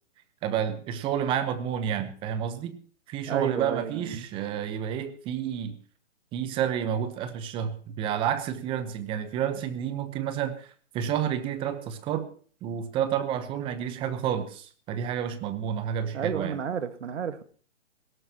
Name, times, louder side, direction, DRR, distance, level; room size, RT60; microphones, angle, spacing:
voice 1, 0.4-2.8 3.1-5.8 6.3-12.3 12.6-16.6, right 9 dB, 15° right, 12 dB, 0.9 m, -30 dB
voice 2, 3.3-4.2 16.1-17.4, right 7 dB, 70° right, 11 dB, 1.8 m, -31 dB
18.5 x 17.0 x 2.9 m, 0.42 s
hypercardioid pair, 145°, 36 cm